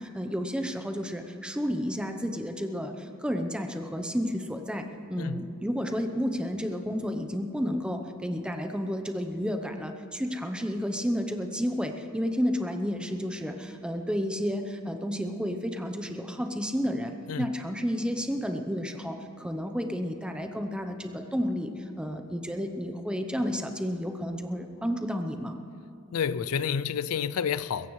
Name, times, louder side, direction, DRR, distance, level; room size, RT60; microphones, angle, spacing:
voice 1, 0.0-25.6, equal, 5° right, 5 dB, 0.7 m, -31 dB
voice 2, 26.1-27.9, left 7 dB, 85° left, 16 dB, 0.4 m, -29 dB
22.0 x 16.5 x 3.2 m, 2.6 s
head